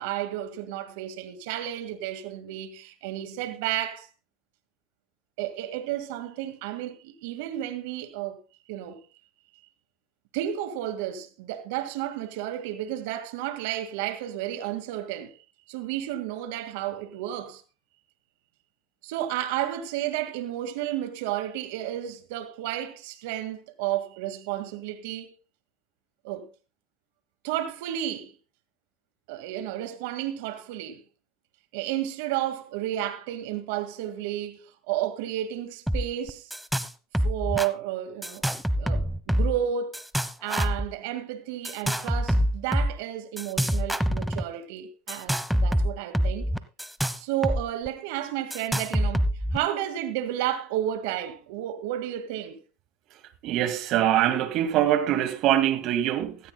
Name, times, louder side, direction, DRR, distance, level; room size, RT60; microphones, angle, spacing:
voice 1, 0.0-4.1 5.4-8.4 8.7-9.0 10.3-15.3 15.7-17.6 19.0-25.3 26.2-26.5 27.4-28.3 29.3-31.0 31.7-34.6 34.9-36.5 37.2-38.5 38.8-40.0 40.4-46.5 47.2-49.3 49.5-52.6, right 12 dB, 75° right, 1.9 m, -32 dB
sound 1, 35.9-36.0 36.3-36.9 37.1-37.7 38.2-39.6 39.9-40.9 41.6-42.9 43.4-44.4 45.1-47.6 47.9-48.0 48.5-49.6, equal, ahead, 1.0 m, -25 dB
voice 2, 53.4-56.4, right 12 dB, 60° right, 2.1 m, -23 dB
16.0 x 14.5 x 2.2 m
supercardioid pair, 95°, 0 cm